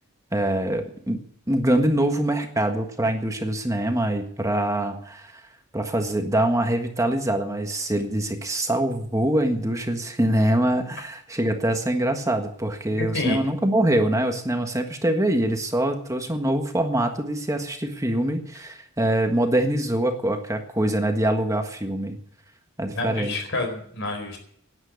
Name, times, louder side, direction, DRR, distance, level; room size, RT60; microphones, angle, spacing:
voice 1, 0.3-1.2 1.5-5.4 5.7-22.2 22.8-23.3, right 1 dB, 15° right, 5 dB, 1.5 m, -24 dB
voice 2, 13.0-13.4 22.9-24.4, left 2 dB, 55° left, 4 dB, 4.3 m, -28 dB
11.5 x 9.6 x 9.5 m, 0.65 s
head